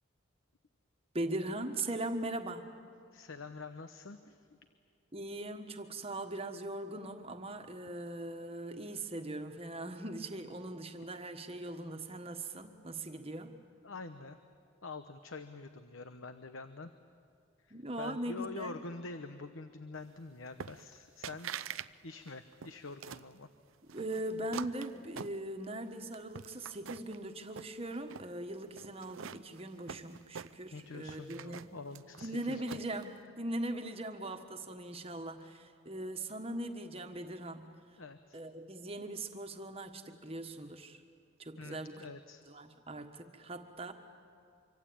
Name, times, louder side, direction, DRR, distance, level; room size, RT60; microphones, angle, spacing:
voice 1, 1.1-2.7 5.1-13.6 17.7-18.8 23.9-31.8 32.1-37.7 38.3-41.0 41.4-42.1 42.5-43.9, right 1 dB, 30° right, 6 dB, 1.5 m, -40 dB
voice 2, 3.1-4.4 13.8-14.4 14.8-16.9 17.7-21.5 22.0-23.5 30.7-32.6 38.0-38.4 41.6-42.4, left 3 dB, 75° left, 9 dB, 1.0 m, -46 dB
sound 1, 20.6-21.0 21.2-21.9 22.2-23.3 23.9-25.8 26.1-27.2 27.5-28.3 28.8-30.8 31.1-33.0, right 7 dB, 75° right, 0.6 m, -45 dB
25.5 x 24.5 x 8.8 m, 2.4 s
head